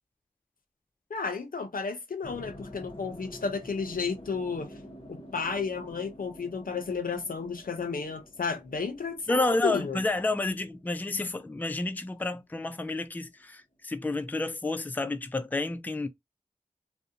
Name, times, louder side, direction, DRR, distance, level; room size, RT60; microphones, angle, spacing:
voice 1, 1.1-4.7 5.1-10.0, left 5 dB, 85° left, 0.6 m, -32 dB
sound 1, 2.2-12.4, left 1 dB, 40° left, 0.7 m, -48 dB
voice 2, 9.3-16.1, left 2 dB, 10° left, 0.3 m, -30 dB
2.5 x 2.1 x 2.7 m
wide cardioid pair, 50°, 14 cm